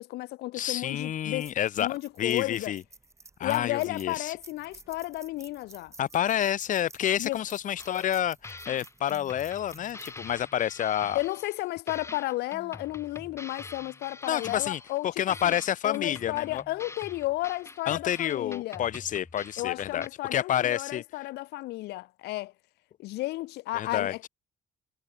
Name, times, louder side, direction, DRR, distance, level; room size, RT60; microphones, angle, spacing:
voice 1, 0.0-1.5 1.8-2.7 3.4-5.9 7.2-7.4 11.1-15.1 15.4-15.5 15.8-18.8 19.6-22.5 23.0-24.3, left 18 dB, 80° left, 0.7 m, -33 dB
voice 2, 0.5-1.9 2.2-2.8 3.4-4.4 6.0-11.2 14.3-16.6 17.9-21.0 23.7-24.1, left 10 dB, 50° left, 0.9 m, -29 dB
sound 1, 0.8-11.3, right 3 dB, 15° right, 4.8 m, -53 dB
sound 2, 7.8-8.2 8.4-11.6 11.9-15.0 15.3-20.1, left 3 dB, 15° left, 3.4 m, -45 dB
cardioid pair, 110°, 17 cm